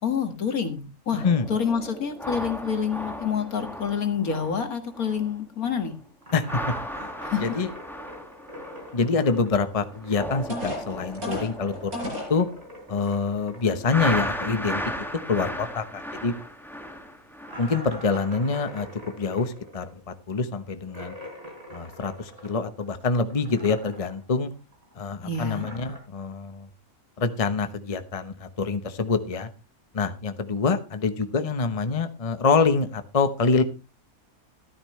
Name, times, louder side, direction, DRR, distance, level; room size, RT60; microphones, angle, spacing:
voice 1, 0.0-5.9 7.2-7.6 25.2-25.7, left 6 dB, 75° left, 7 dB, 2.3 m, -28 dB
sound 1, 1.2-5.4 5.6-5.9 6.3-9.6 9.9-13.2 13.9-18.4 18.8-19.0, equal, ahead, 2.0 m, -36 dB
sound 2, 6.2-10.5 10.8-15.8 16.1-16.2 16.6-16.7 17.4-23.0 23.3-24.2 24.5-26.0, equal, 25° right, 4.9 m, -44 dB
voice 2, 7.4-7.7 8.9-11.9 12.3-12.5 12.9-14.8 15.3-16.3 17.6-18.9 19.1-21.1 21.7-24.5 24.9-26.7 27.2-29.5 29.9-33.6, left 4 dB, 25° left, 10 dB, 1.0 m, -25 dB
sound 3, 9.9-10.0 10.5-12.4 13.0-13.1 13.6-13.8, left 1 dB, 75° right, 6.5 m, -33 dB
14.0 x 12.5 x 3.2 m, 0.30 s
omnidirectional pair, 1.5 m